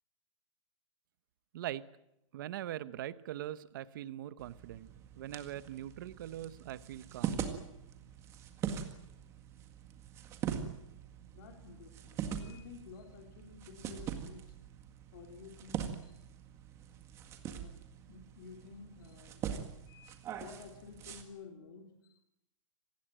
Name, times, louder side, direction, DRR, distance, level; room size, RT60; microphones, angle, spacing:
voice 1, 2.3-4.9 5.2-7.5, right 12 dB, 40° right, 16 dB, 1.0 m, -42 dB
sound 1, 4.4-21.2, right 8 dB, 15° right, 1.8 m, -43 dB
voice 2, 11.3-14.6 15.1-16.2 16.5-16.6 17.4-17.8 18.1-19.5 19.9-22.2, left 5 dB, 40° left, 4 dB, 3.3 m, -52 dB
26.5 x 19.5 x 9.0 m, 0.84 s
hypercardioid pair, 170°, 17 cm